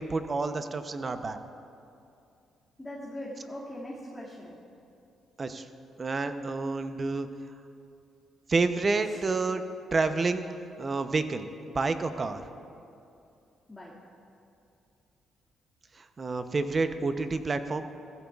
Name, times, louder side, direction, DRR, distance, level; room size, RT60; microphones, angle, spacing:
voice 1, 0.0-1.4 5.4-5.7 6.0-7.3 8.5-9.6 9.9-10.4 10.8-11.5 11.7-12.4 16.2-17.9, right 3 dB, 35° right, 9 dB, 0.7 m, -29 dB
voice 2, 2.8-4.6 9.0-9.2 13.7-13.9, left 1 dB, 10° left, -7 dB, 2.1 m, -41 dB
16.5 x 15.0 x 2.4 m, 2.6 s
cardioid pair, 90°, 0 cm